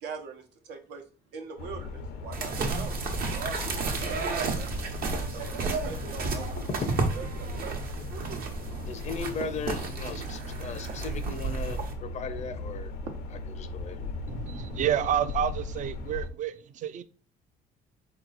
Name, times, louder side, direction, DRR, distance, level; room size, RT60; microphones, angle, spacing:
voice 1, 0.0-1.0 1.3-3.6 3.8-4.8 5.3-6.8 7.1-8.0 9.6-10.2 11.8-11.9 13.1-13.2, right 5 dB, 85° right, 1.0 m, -42 dB
sound 1, 1.6-16.3, left 3 dB, 85° left, 0.8 m, -38 dB
sound 2, 2.3-11.9, right 4 dB, 60° right, 1.0 m, -32 dB
voice 2, 8.9-11.8 12.1-12.9 13.5-14.1, left 5 dB, 45° left, 0.6 m, -37 dB
voice 3, 14.3-17.0, right 9 dB, 45° right, 0.5 m, -29 dB
4.1 x 3.0 x 3.9 m
cardioid pair, 110°, 17 cm